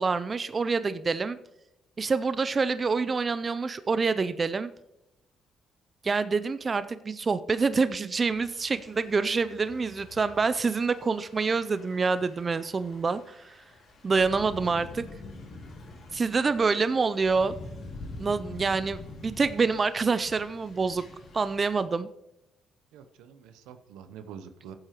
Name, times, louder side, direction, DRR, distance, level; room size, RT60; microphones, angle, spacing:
voice 1, 0.0-1.4 2.0-4.7 6.0-13.5 14.0-15.0 16.1-17.6 18.2-21.0 21.3-22.1, right 4 dB, 40° right, 14 dB, 0.4 m, -26 dB
Thunder / Rain, 8.2-21.8, left 2 dB, 60° left, 3.1 m, -46 dB
voice 2, 22.9-24.7, right 7 dB, 85° right, 10 dB, 0.7 m, -46 dB
15.5 x 7.7 x 3.0 m, 0.90 s
supercardioid pair, 65°, 0 cm